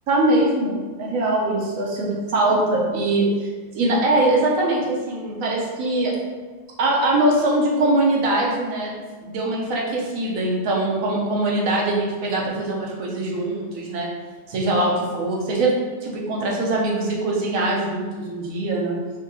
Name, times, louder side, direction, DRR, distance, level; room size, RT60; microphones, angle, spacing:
voice 1, 0.1-3.3 3.7-6.1 6.8-8.9 9.2-14.1 14.5-15.7 16.0-19.0, right 2 dB, 90° right, -3 dB, 1.1 m, -22 dB
4.0 x 2.7 x 2.6 m, 1.4 s
omnidirectional pair, 1.4 m